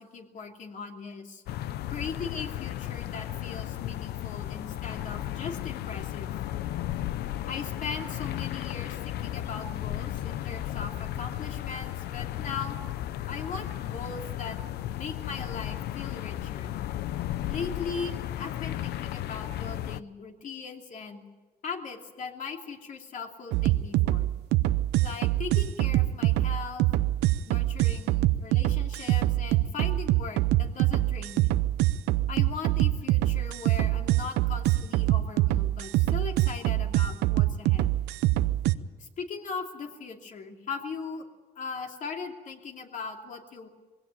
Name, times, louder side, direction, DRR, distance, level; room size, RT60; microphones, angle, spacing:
voice 1, 0.0-1.4 1.9-6.3 7.5-12.8 13.3-14.6 14.9-16.8 17.5-21.2 21.6-24.3 25.0-26.9 27.5-31.6 32.3-38.0 39.0-41.3 41.6-43.7, left 5 dB, 50° left, 3 dB, 2.8 m, -39 dB
sound 1, 1.5-20.0, left 13 dB, 75° left, 0.7 m, -34 dB
sound 2, 23.5-38.7, right 16 dB, 90° right, 0.7 m, -24 dB
21.0 x 17.0 x 9.2 m, 1.3 s
cardioid pair, 110°, 17 cm